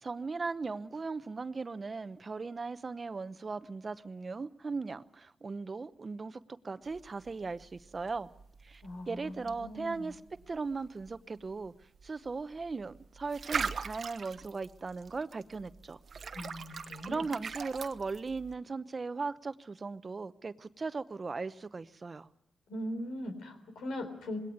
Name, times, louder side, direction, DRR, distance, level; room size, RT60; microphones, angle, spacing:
voice 1, 0.0-8.3 8.6-10.2 10.5-11.7 12.0-16.0 17.1-22.3, right 4 dB, 40° right, 0.9 m, -38 dB
sound 1, 6.8-18.5, right 6 dB, 60° right, 1.2 m, -42 dB
voice 2, 8.8-10.2 16.3-17.3 22.7-24.4, left 1 dB, 85° left, 4.0 m, -40 dB
21.0 x 17.5 x 9.4 m
cardioid pair, 55°, 0 cm